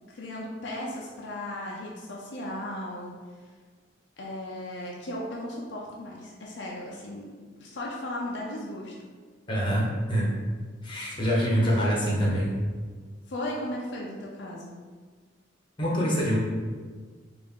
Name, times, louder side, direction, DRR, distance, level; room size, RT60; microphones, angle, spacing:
voice 1, 0.1-3.1 4.2-7.3 7.5-8.9 11.0-11.2 11.6-11.7 13.3-14.8, left 1 dB, 65° left, -3 dB, 0.5 m, -36 dB
voice 2, 9.5-10.3 10.8-12.5 15.8-16.4, equal, 25° left, -5 dB, 0.9 m, -25 dB
3.5 x 2.5 x 3.6 m, 1.5 s
head